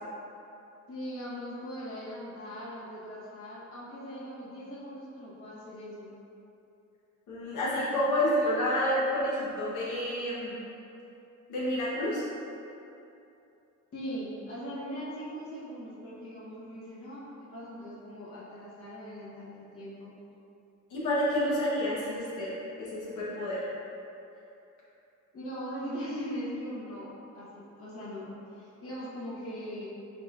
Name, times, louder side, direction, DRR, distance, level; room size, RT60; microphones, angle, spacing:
voice 1, 0.9-6.1 13.9-20.1 25.3-27.1 27.3-28.3 28.6-29.9, equal, 45° left, -8 dB, 1.0 m, -40 dB
voice 2, 7.3-10.6 11.5-12.2 20.9-22.5 22.8-23.6, left 1 dB, 75° left, -8 dB, 1.0 m, -29 dB
4.4 x 3.9 x 2.4 m, 2.8 s
cardioid pair, 160°, 30 cm